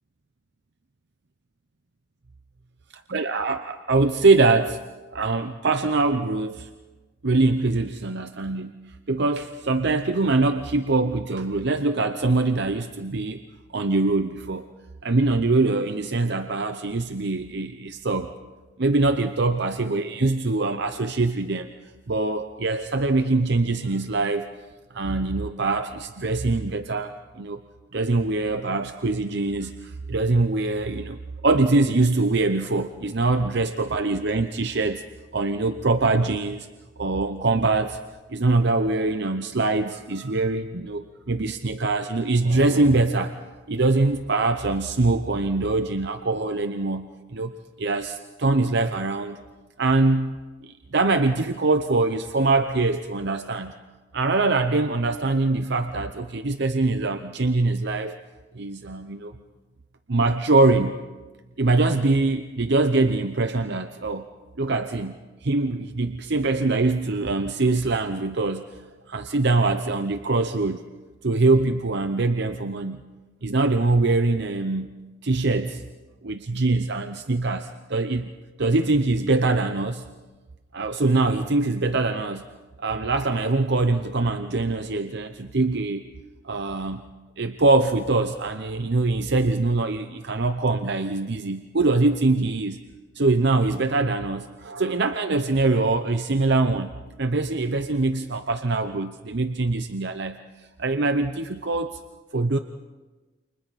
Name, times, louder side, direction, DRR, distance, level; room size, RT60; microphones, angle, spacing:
voice 1, 2.9-4.8 5.1-6.7 7.2-8.7 9.1-13.4 13.7-14.7 15.0-18.3 18.8-21.7 22.1-24.5 24.9-27.6 27.9-35.0 35.3-36.7 37.0-38.0 38.3-43.3 43.7-47.5 47.8-49.4 49.8-50.4 50.6-53.7 54.1-58.2 58.5-59.3 60.1-61.0 61.6-64.3 64.6-68.7 69.1-70.8 71.2-73.0 73.4-74.9 75.2-75.8 76.2-78.3 78.6-80.0 80.7-82.5 82.8-86.0 86.4-87.0 87.4-92.8 93.1-96.9 97.2-100.4 100.8-102.0 102.3-102.6, right 3 dB, 55° right, 8 dB, 0.8 m, -23 dB
29.5 x 28.5 x 4.2 m, 1.2 s
head